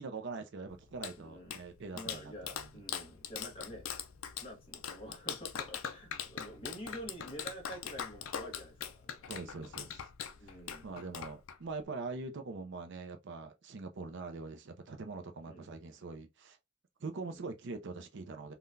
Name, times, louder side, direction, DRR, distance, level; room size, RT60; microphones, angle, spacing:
voice 1, 0.0-2.5 9.3-10.1 10.8-16.6 17.0-18.5, right 3 dB, 55° right, 0.5 m, -43 dB
Clapping, 0.7-11.8, left 8 dB, 70° left, 0.4 m, -42 dB
voice 2, 1.2-1.6 1.9-3.9 4.4-9.3 10.3-10.9 15.4-15.7 17.3-17.5, equal, 25° left, 1.0 m, -48 dB
3.7 x 2.2 x 2.5 m
head